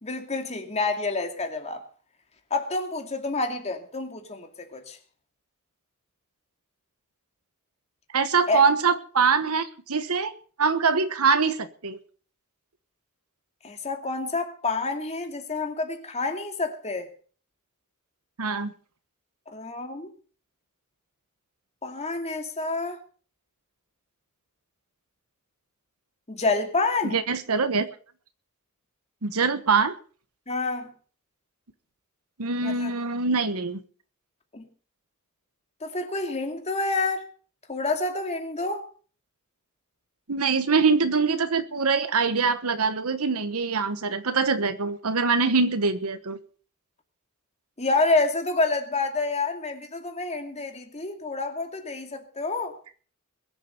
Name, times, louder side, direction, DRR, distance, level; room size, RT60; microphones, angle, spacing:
voice 1, 0.0-1.8 2.5-5.0 8.5-8.6 13.6-17.1 19.5-20.1 21.8-23.0 26.3-27.2 30.5-30.9 32.6-32.9 34.5-34.7 35.8-37.2 37.7-38.9 47.8-52.7, left 3 dB, 30° left, 2.5 m, -28 dB
voice 2, 8.1-10.3 10.6-12.0 18.4-18.7 27.1-27.9 29.2-29.9 32.4-33.8 40.3-46.4, right 5 dB, 80° right, 1.2 m, -23 dB
22.0 x 7.5 x 6.7 m
head